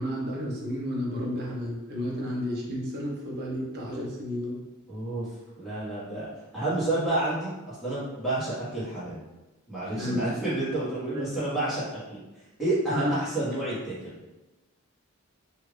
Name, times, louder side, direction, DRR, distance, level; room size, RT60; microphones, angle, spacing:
voice 1, 0.0-4.5 9.8-10.2 12.9-13.2, equal, 50° right, -3 dB, 0.7 m, -31 dB
voice 2, 4.9-5.3 5.6-6.3 6.5-9.2 9.7-12.2 12.6-14.1, right 2 dB, ahead, -13 dB, 1.4 m, -29 dB
2.8 x 2.4 x 3.2 m, 1.1 s
head